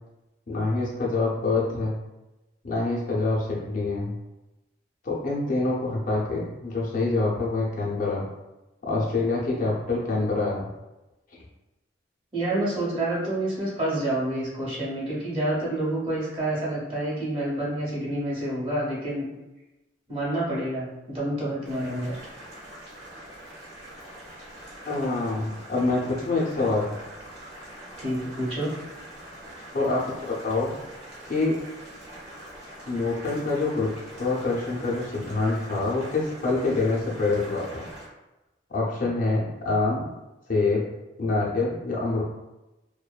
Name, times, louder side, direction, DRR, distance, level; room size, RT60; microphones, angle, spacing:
voice 1, 0.5-2.0 2.6-4.2 5.0-8.2 8.8-10.7 24.9-26.9 29.7-30.7 31.3-31.6 32.9-33.9 34.2-37.8 38.7-40.1 40.5-40.8 41.2-42.2, left 3 dB, 45° left, -4 dB, 0.5 m, -26 dB
voice 2, 12.3-19.3 20.1-22.2 28.0-28.7, right 1 dB, 30° right, -7 dB, 0.9 m, -28 dB
Boiling, 21.6-38.1, right 1 dB, 60° right, 0.9 m, -44 dB
2.5 x 2.1 x 2.3 m, 1.0 s
head